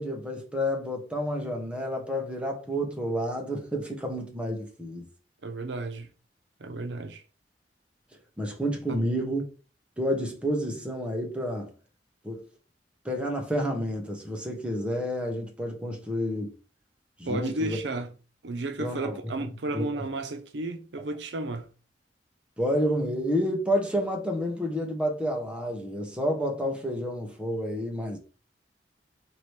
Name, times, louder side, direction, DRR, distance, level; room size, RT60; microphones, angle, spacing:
voice 1, 0.0-5.0 8.4-9.5 10.0-11.7 12.2-12.4 13.0-16.5 17.2-17.8 18.8-19.5 19.7-20.0 22.6-28.2, equal, 5° right, 1.0 m, -30 dB
voice 2, 5.4-6.1 6.6-7.2 17.3-18.1 18.4-21.7, right 2 dB, 90° right, 0.6 m, -33 dB
4.6 x 2.9 x 3.3 m
head